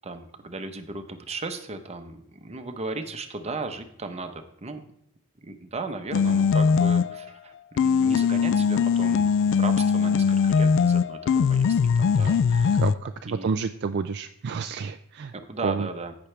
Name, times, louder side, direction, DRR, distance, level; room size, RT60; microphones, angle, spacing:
voice 1, 0.0-4.8 5.4-9.3 9.6-11.2 11.5-12.9 13.3-13.5 15.3-16.2, right 3 dB, 30° right, 7 dB, 0.9 m, -36 dB
sound 1, 6.1-7.3 7.8-12.9, left 6 dB, 55° left, 0.3 m, -21 dB
voice 2, 12.8-13.1 13.4-15.3 15.6-15.9, right 5 dB, 50° right, 8 dB, 0.4 m, -29 dB
15.5 x 6.1 x 3.3 m, 0.75 s
head